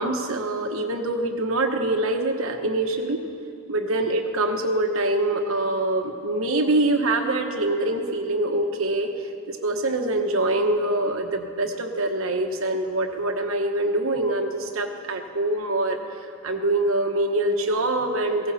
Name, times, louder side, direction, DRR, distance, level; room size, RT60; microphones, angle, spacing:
voice 1, 0.0-3.2 3.7-9.1 9.5-16.0 16.4-18.5, right 2 dB, 80° right, 4 dB, 1.2 m, -24 dB
16.5 x 16.0 x 4.2 m, 2.4 s
head